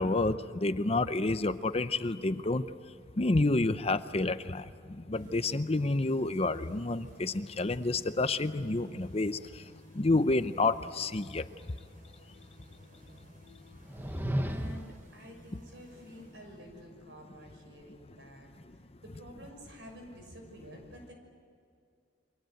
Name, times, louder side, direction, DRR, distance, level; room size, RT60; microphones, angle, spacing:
voice 1, 0.0-2.6 3.2-9.4 9.9-11.4, left 2 dB, 30° left, 12 dB, 0.7 m, -29 dB
sound 1, 5.1-17.0, equal, 45° right, 4.0 m, -56 dB
sound 2, 13.7-15.1, equal, 10° right, 0.9 m, -33 dB
voice 2, 14.4-21.1, equal, 70° right, 3 dB, 6.2 m, -50 dB
28.5 x 24.0 x 7.9 m, 2.4 s
head